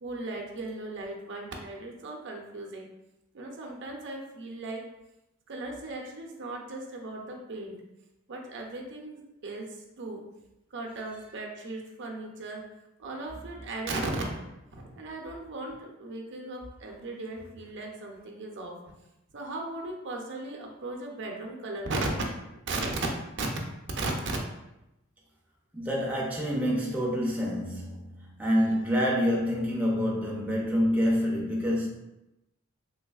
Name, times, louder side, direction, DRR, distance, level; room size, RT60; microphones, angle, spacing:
voice 1, 0.0-2.9 3.3-4.9 5.5-7.8 8.3-10.2 10.7-12.6 13.0-18.8 19.3-22.1 22.7-23.0 23.4-23.5 24.0-24.1, right 2 dB, 60° right, 1 dB, 0.6 m, -37 dB
voice 2, 25.7-31.9, equal, 5° right, -4 dB, 0.5 m, -27 dB
3.3 x 3.2 x 2.3 m, 0.91 s
head